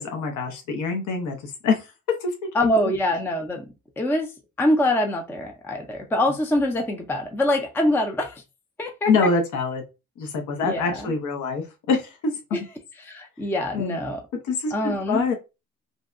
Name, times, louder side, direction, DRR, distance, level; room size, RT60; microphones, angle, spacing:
voice 1, 0.0-1.8 2.2-2.3 2.6-2.7 9.1-9.8 10.2-12.3 13.7-14.0 14.5-15.3, left 4 dB, 80° left, 0.8 m, -25 dB
voice 2, 2.5-3.7 4.0-4.3 4.6-8.4 8.8-9.1 10.6-11.1 12.5-12.6 13.0-14.2 14.7-15.2, left 1 dB, 10° left, 0.4 m, -24 dB
2.7 x 2.2 x 2.4 m
cardioid pair, 90°, 30 cm